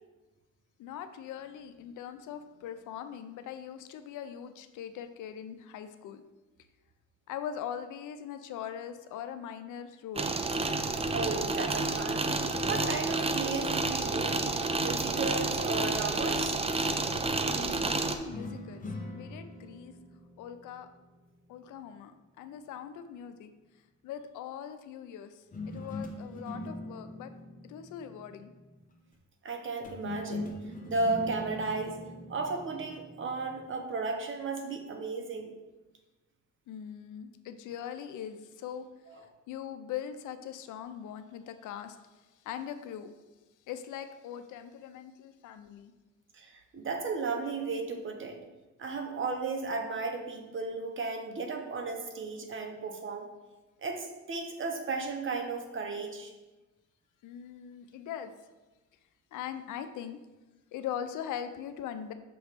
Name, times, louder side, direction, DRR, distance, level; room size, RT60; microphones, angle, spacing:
voice 1, 0.8-6.2 7.3-10.3 17.4-18.9 19.1-19.9 20.4-20.9 21.5-23.5 24.0-27.3 27.6-28.5 36.7-38.9 39.5-42.0 42.4-43.1 43.7-45.9 57.2-58.3 59.3-60.2 60.7-62.1, left 9 dB, 80° left, 9 dB, 0.6 m, -41 dB
sound 1, 10.2-18.2, right 3 dB, 20° right, 0.5 m, -30 dB
voice 2, 11.1-14.4 14.7-16.6 29.4-30.5 30.9-32.0 32.3-35.5 39.1-39.2 46.3-48.4 48.8-53.3 53.8-56.3, right 4 dB, 40° right, 3 dB, 1.0 m, -34 dB
sound 2, 18.3-21.7 25.5-28.9 29.8-33.7, left 1 dB, 25° left, 1.0 m, -42 dB
6.0 x 3.1 x 5.1 m, 1.1 s
cardioid pair, 90°, 30 cm